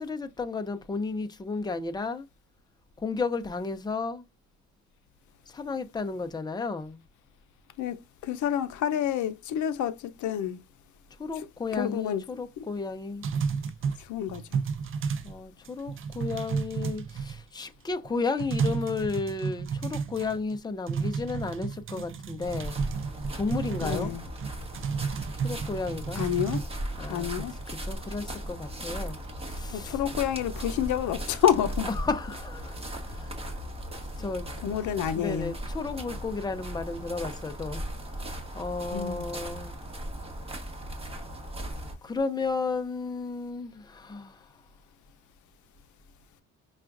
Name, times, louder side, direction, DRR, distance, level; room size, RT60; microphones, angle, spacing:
voice 1, 0.0-2.3 3.0-4.2 5.5-7.0 11.2-13.3 15.2-22.8 23.4-24.1 25.4-26.2 27.0-27.3 27.7-29.2 29.4-30.0 31.9-32.8 33.1-33.4 34.2-34.8 35.1-37.8 38.5-39.8 42.0-44.5, left 4 dB, 15° left, 0.5 m, -33 dB
voice 2, 7.8-10.6 11.7-12.2 14.0-14.6 23.8-24.2 26.2-26.6 27.1-27.5 29.7-31.9 34.6-35.5 38.9-39.3, left 10 dB, 75° left, 0.6 m, -28 dB
sound 1, 13.2-15.4 15.6-17.6 18.0-18.1 18.4-20.6 20.9-26.6, right 6 dB, 45° right, 0.5 m, -32 dB
sound 2, 22.4-41.9, right 1 dB, 20° right, 1.2 m, -37 dB
5.5 x 2.4 x 2.4 m
cardioid pair, 90°, 30 cm